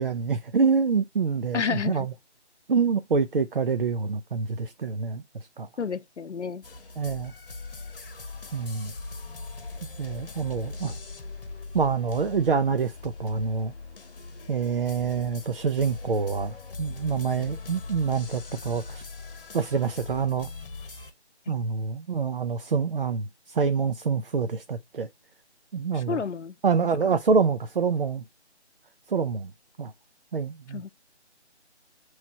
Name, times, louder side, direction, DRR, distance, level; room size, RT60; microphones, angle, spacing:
voice 1, 0.0-2.1 2.7-5.2 5.6-5.7 7.0-7.3 8.5-8.9 10.0-11.0 11.7-13.7 14.5-19.0 19.5-20.5 21.5-25.1 25.7-26.2 26.6-28.2 29.1-29.5 29.8-29.9 30.3-30.8, right 5 dB, 50° right, 0.5 m, -26 dB
voice 2, 1.5-2.1 5.8-6.6 21.5-21.6 25.9-26.6 27.0-27.2 30.7-30.9, left 6 dB, 85° left, 0.7 m, -30 dB
sound 1, 6.6-21.1, left 3 dB, 50° left, 1.0 m, -41 dB
7.2 x 3.2 x 4.1 m
figure-of-eight pair, 160°, 34 cm